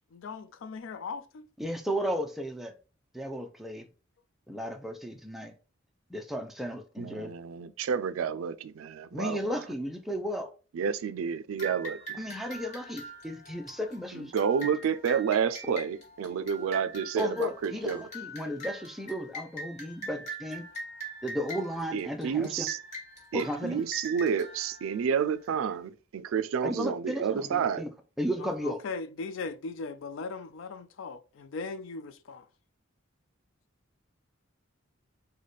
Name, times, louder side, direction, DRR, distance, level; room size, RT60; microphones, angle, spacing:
voice 1, 0.1-1.5 28.4-32.5, left 4 dB, 70° left, 0.4 m, -39 dB
voice 2, 1.6-2.7 3.1-3.9 4.5-5.5 6.1-7.3 9.1-10.5 12.2-14.3 17.2-20.6 21.2-22.7 23.3-23.8 26.6-27.9 28.2-28.8, equal, ahead, 0.4 m, -34 dB
voice 3, 7.0-9.6 10.7-12.2 14.1-18.1 21.9-22.8 23.3-27.8, right 7 dB, 85° right, 0.3 m, -30 dB
sound 1, 11.6-25.7, right 1 dB, 35° left, 1.3 m, -43 dB
4.0 x 2.2 x 3.2 m
head